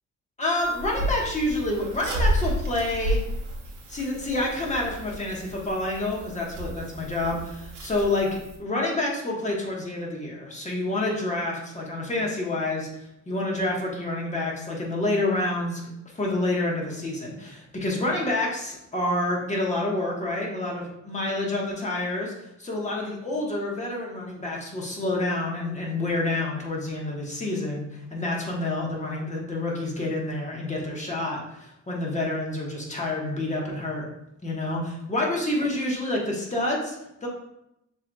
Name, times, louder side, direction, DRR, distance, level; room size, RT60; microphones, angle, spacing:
voice 1, 0.4-3.2 3.9-8.3 8.6-15.8 16.1-34.0 34.4-37.0 37.2-37.3, left 2 dB, 25° left, -2 dB, 1.3 m, -28 dB
sound 1, 0.6-8.6, equal, 90° right, 1.2 m, -31 dB
6.6 x 3.2 x 2.3 m, 0.84 s
cardioid pair, 90°, 30 cm